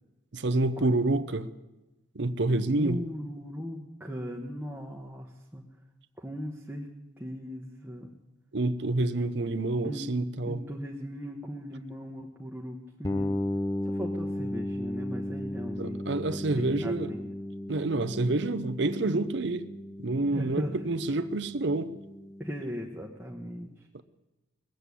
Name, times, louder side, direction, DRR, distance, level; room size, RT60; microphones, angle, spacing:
voice 1, 0.3-1.5 2.1-3.0 8.5-10.6 15.8-17.1 17.7-19.6 20.0-21.9 23.9-24.0, right 2 dB, 65° right, 11 dB, 0.7 m, -28 dB
voice 2, 2.8-5.6 6.2-6.9 7.2-8.1 9.8-10.1 10.4-13.3 13.8-17.3 20.3-20.8 22.4-23.9, equal, 10° right, -2 dB, 1.1 m, -38 dB
sound 1, 13.0-22.8, left 1 dB, 15° left, 0.7 m, -35 dB
20.0 x 7.8 x 8.3 m, 1.1 s
head